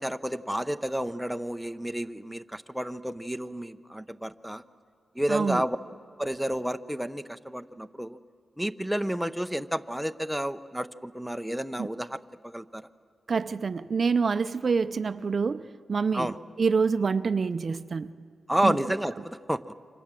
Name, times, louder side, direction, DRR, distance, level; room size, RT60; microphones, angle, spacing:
voice 1, 0.0-4.6 5.2-5.8 6.2-8.2 8.6-12.2 12.4-12.9 16.1-16.4 18.5-19.7, right 1 dB, 5° right, 0.7 m, -30 dB
voice 2, 5.3-5.7 11.8-11.9 13.3-16.3 16.6-18.1 18.6-18.8, right 5 dB, 50° right, 0.6 m, -26 dB
28.5 x 25.0 x 7.6 m
cardioid pair, 90°, 0 cm